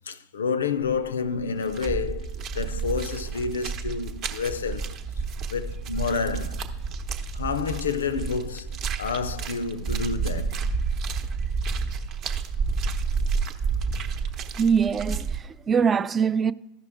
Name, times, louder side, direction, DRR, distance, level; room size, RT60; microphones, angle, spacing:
voice 1, 0.1-5.0 5.5-6.7 7.3-10.7, left 5 dB, 85° left, 0.4 m, -29 dB
sound 1, 0.8-1.1 1.4-15.4, right 5 dB, 45° right, 0.8 m, -30 dB
voice 2, 14.6-16.5, right 6 dB, 25° right, 0.3 m, -23 dB
14.0 x 5.6 x 3.5 m
hypercardioid pair, 90°, 0 cm